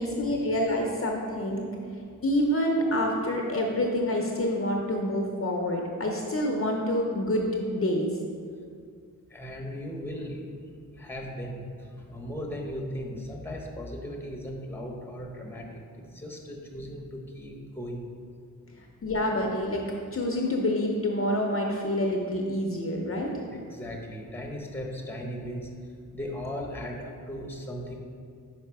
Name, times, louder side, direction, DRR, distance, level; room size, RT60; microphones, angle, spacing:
voice 1, 0.0-1.7 2.2-8.1 19.0-19.8 20.1-23.3, left 1 dB, 40° left, 0 dB, 0.7 m, -27 dB
voice 2, 9.3-10.5 10.9-18.1 18.6-18.8 23.5-25.7 26.1-28.0, equal, 5° left, 0 dB, 1.0 m, -37 dB
5.7 x 4.8 x 4.7 m, 2.3 s
cardioid pair, 80°, 36 cm